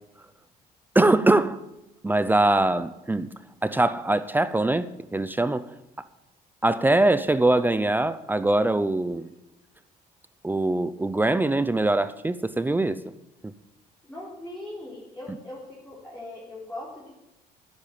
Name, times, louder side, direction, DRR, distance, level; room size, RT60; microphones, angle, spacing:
voice 1, 0.9-1.6 2.0-3.3 3.6-5.7 6.6-9.3 10.4-13.0, right 2 dB, 10° right, 0.6 m, -22 dB
voice 2, 14.1-17.1, left 1 dB, 5° left, 4.3 m, -40 dB
10.5 x 8.6 x 9.4 m
cardioid pair, 110°, 17 cm